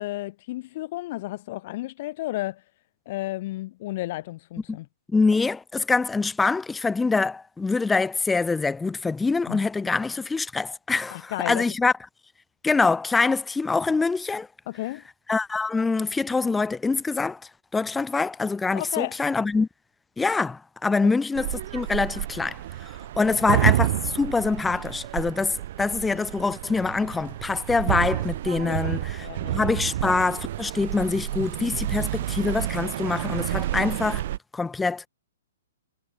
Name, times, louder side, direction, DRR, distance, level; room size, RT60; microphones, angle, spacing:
voice 1, 0.0-2.6 3.1-4.9 9.5-9.7 11.1-11.6 14.7-15.0 18.7-19.2 21.0-21.1 23.3-23.4 28.6-29.7, left 17 dB, 35° left, 2.4 m, -33 dB
voice 2, 5.1-11.9 12.6-14.5 15.3-17.4 17.7-19.7 20.2-29.2 29.5-34.2 34.5-35.1, left 4 dB, 5° left, 1.1 m, -25 dB
sound 1, 21.4-34.4, right 13 dB, 45° right, 0.4 m, -29 dB
hypercardioid pair, 165°, 0 cm